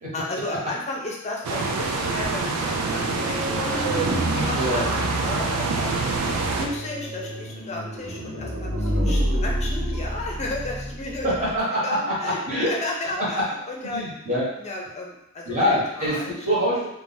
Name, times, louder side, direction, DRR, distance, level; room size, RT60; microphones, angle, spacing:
voice 1, 0.1-3.9 4.3-4.9 5.2-5.9 6.4-11.3 11.8-12.4 12.7-13.4 13.7-14.1 14.6-16.4, left 2 dB, 30° left, -1 dB, 0.5 m, -33 dB
sound 1, 1.4-6.7, right 3 dB, 80° right, 0.4 m, -26 dB
sound 2, 2.8-11.6, equal, 55° right, 0.7 m, -29 dB
voice 2, 4.5-4.8 11.2-12.7 13.2-13.4 13.8-14.5 15.5-16.9, equal, 35° right, -7 dB, 1.0 m, -24 dB
2.4 x 2.1 x 3.8 m, 0.84 s
head